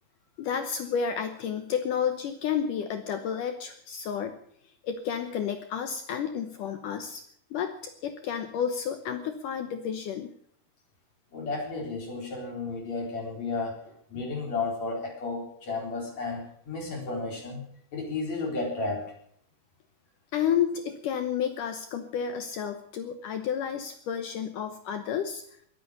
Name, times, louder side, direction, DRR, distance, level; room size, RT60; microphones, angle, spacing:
voice 1, 0.4-4.4 4.8-7.2 7.5-10.3 20.3-25.4, left 8 dB, 70° left, 8 dB, 2.2 m, -31 dB
voice 2, 11.3-17.6 17.9-19.1, left 3 dB, 45° left, 0 dB, 5.2 m, -33 dB
21.5 x 8.9 x 6.7 m, 0.64 s
omnidirectional pair, 4.6 m